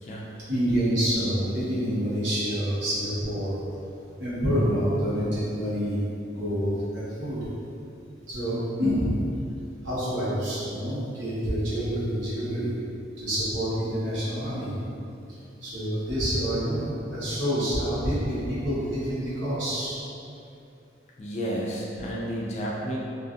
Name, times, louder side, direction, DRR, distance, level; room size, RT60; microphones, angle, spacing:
voice 1, 0.5-3.6 4.2-6.0 6.3-7.4 8.3-9.1 9.8-12.7 13.2-14.7 15.6-20.0, equal, 80° right, -11 dB, 1.1 m, -27 dB
voice 2, 21.2-23.0, equal, 35° left, -4 dB, 0.3 m, -31 dB
2.5 x 2.5 x 2.4 m, 2.7 s
head